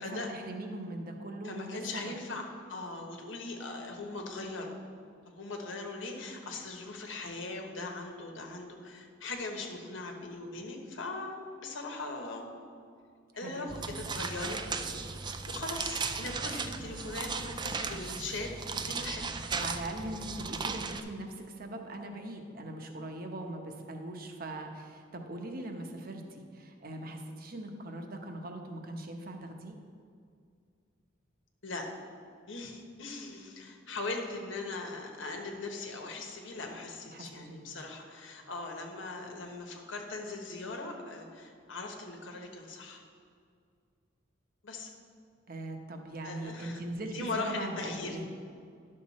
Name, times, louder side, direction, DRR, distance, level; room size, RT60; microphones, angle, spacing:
voice 1, 0.0-2.1 13.4-13.7 19.6-29.7 37.1-37.7 45.5-48.3, right 1 dB, 50° right, 4 dB, 0.9 m, -40 dB
voice 2, 1.4-4.8 5.3-12.4 13.3-19.3 31.6-31.9 32.5-43.0 44.6-44.9 46.2-46.8 47.1-48.2, left 3 dB, 90° left, 2 dB, 1.2 m, -40 dB
sound 1, 13.7-21.0, right 4 dB, 25° right, 0.4 m, -36 dB
10.5 x 6.6 x 4.2 m, 2.2 s
head